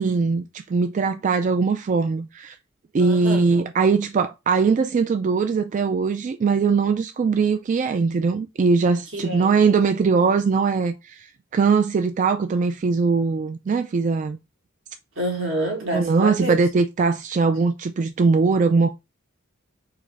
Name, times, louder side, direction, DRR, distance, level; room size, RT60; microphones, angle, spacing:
voice 1, 0.0-2.6 2.9-14.4 15.9-18.9, right 4 dB, 40° right, 0.3 m, -21 dB
voice 2, 3.0-3.5 9.1-9.5 15.2-16.6, right 1 dB, 70° right, 1.7 m, -27 dB
4.7 x 2.1 x 4.5 m
head